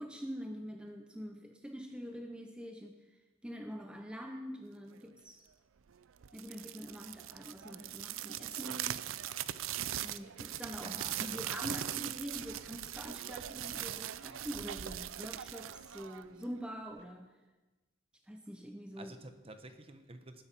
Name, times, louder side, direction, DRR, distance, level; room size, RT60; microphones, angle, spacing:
voice 1, 0.0-5.4 6.3-9.0 10.0-17.4 18.3-19.1, equal, 5° right, 3 dB, 0.7 m, -45 dB
sound 1, 6.2-16.6, right 11 dB, 70° right, 0.5 m, -40 dB
voice 2, 10.8-11.5 19.0-20.4, right 2 dB, 30° right, 8 dB, 1.1 m, -50 dB
19.5 x 9.5 x 4.5 m, 1.1 s
head